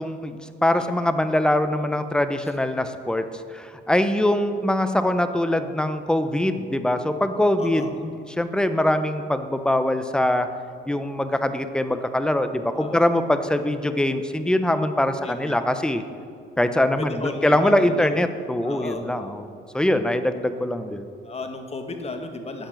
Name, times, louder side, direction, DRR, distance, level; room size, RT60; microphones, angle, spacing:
voice 1, 0.0-3.3 3.5-10.5 10.9-16.0 16.6-19.5 19.7-21.1, left 1 dB, 5° left, 10 dB, 0.7 m, -23 dB
voice 2, 0.8-1.1 2.4-2.5 7.6-8.0 12.8-13.1 15.2-15.6 17.0-18.1 18.6-19.0 21.2-22.7, left 3 dB, 30° left, 5 dB, 1.3 m, -34 dB
9.0 x 7.1 x 7.7 m, 2.3 s
cardioid pair, 90°, 20 cm